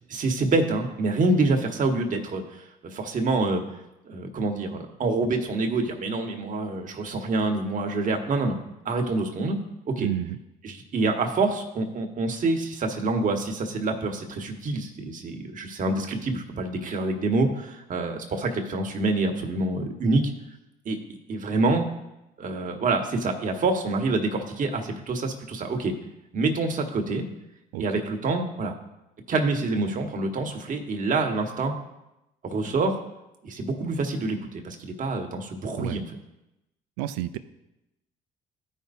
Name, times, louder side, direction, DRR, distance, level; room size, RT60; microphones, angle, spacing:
voice 1, 0.1-3.6 4.1-8.6 8.8-9.6 9.9-10.1 10.6-20.2 20.8-21.0 21.3-21.8 22.4-25.9 26.3-27.2 27.8-28.8 29.3-31.7 32.4-33.0 33.4-36.1, right 3 dB, 45° right, 3 dB, 1.6 m, -26 dB
voice 2, 10.0-10.4 27.7-27.8 35.8-36.0 37.0-37.4, right 13 dB, 90° right, 13 dB, 0.5 m, -30 dB
14.0 x 5.5 x 2.7 m, 0.93 s
supercardioid pair, 75°, 18 cm